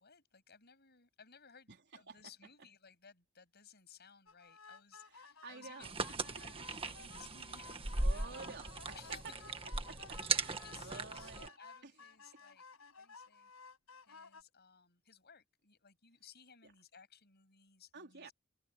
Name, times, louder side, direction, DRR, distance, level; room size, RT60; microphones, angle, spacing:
voice 1, 0.0-1.7 1.9-8.5 8.9-9.4 10.4-12.6 13.0-13.5 14.0-18.3, left 7 dB, 50° left, 7.5 m, -60 dB
voice 2, 1.7-2.2 5.0-6.4 8.0-9.3 9.9-11.6 11.8-12.0 12.3-12.4 16.6-16.7 17.9-18.3, right 4 dB, 55° right, 4.3 m, -52 dB
sound 1, 4.3-14.4, left 4 dB, 85° left, 7.2 m, -56 dB
sound 2, 5.8-11.5, right 3 dB, 25° right, 1.6 m, -38 dB
head